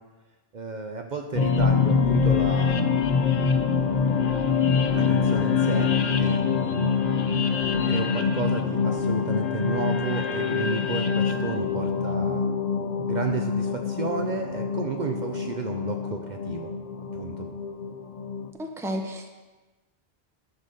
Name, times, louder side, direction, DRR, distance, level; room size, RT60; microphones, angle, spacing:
voice 1, 0.5-3.0 4.9-5.9 6.2-7.0 7.9-12.4 13.1-16.7 17.1-17.5, right 4 dB, 50° right, 4 dB, 0.7 m, -32 dB
sound 1, 1.3-18.5, left 6 dB, 50° left, 0.6 m, -25 dB
voice 2, 18.6-19.3, equal, 5° right, 3 dB, 0.7 m, -32 dB
11.0 x 4.1 x 6.6 m, 1.2 s
omnidirectional pair, 1.1 m